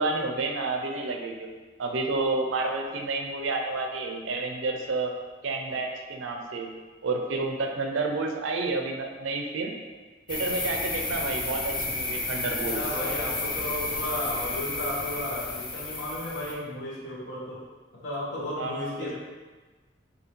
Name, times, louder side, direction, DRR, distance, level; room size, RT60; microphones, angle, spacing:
voice 1, 0.0-5.1 5.4-6.7 7.0-9.7 10.3-12.8 18.6-19.1, right 3 dB, 90° right, 2 dB, 0.5 m, -30 dB
sound 1, 10.3-16.5, left 2 dB, 25° left, 0.5 m, -32 dB
voice 2, 12.7-17.6 18.0-19.1, left 1 dB, 75° left, -7 dB, 1.2 m, -33 dB
4.8 x 2.7 x 3.1 m, 1.3 s
head